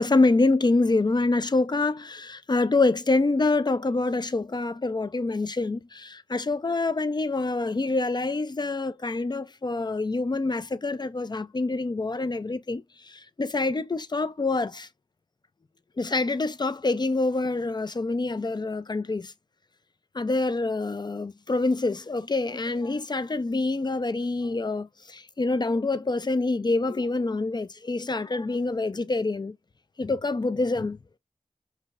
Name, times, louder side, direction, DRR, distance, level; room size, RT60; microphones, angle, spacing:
voice 1, 0.0-14.9 16.0-19.3 20.1-29.6 30.0-31.0, left 3 dB, 35° left, 0.4 m, -26 dB
5.0 x 2.7 x 2.4 m
wide cardioid pair, 45°, 13 cm